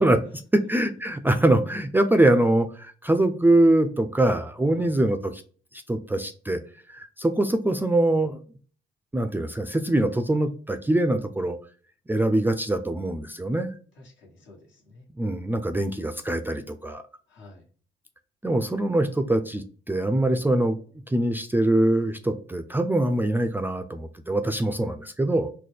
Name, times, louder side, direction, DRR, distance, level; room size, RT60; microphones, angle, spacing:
voice 1, 0.5-5.4 5.9-6.6 6.9-8.4 9.1-11.6 12.1-13.7 15.2-17.0 18.4-20.8 21.1-25.5, right 1 dB, 10° right, 8 dB, 0.3 m, -23 dB
voice 2, 14.0-15.1 17.3-17.7, left 2 dB, 70° left, -1 dB, 1.3 m, -50 dB
3.9 x 2.2 x 3.2 m, 0.42 s
cardioid pair, 90°, 20 cm